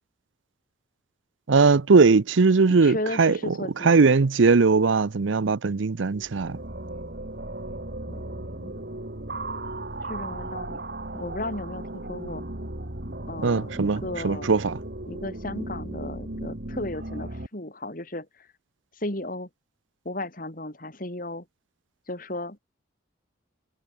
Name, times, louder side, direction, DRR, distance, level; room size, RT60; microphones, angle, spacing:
voice 1, 1.5-3.4 3.8-6.6 13.4-14.8, right 4 dB, 80° right, 0.6 m, -20 dB
voice 2, 2.7-4.2 8.1-8.8 10.0-10.8 11.1-12.5 13.3-14.5 15.1-18.5 19.0-19.5 20.0-21.5 22.1-22.6, left 1 dB, 45° left, 4.1 m, -35 dB
sound 1, 6.0-17.5, right 1 dB, 55° right, 2.6 m, -36 dB
head